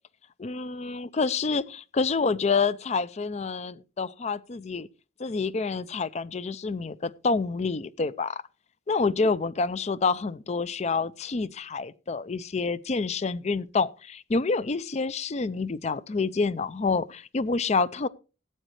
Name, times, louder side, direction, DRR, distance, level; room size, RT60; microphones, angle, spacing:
voice 1, 0.4-4.9 5.2-8.4 8.9-18.1, left 4 dB, 35° left, 0.4 m, -28 dB
16.5 x 9.0 x 3.2 m
head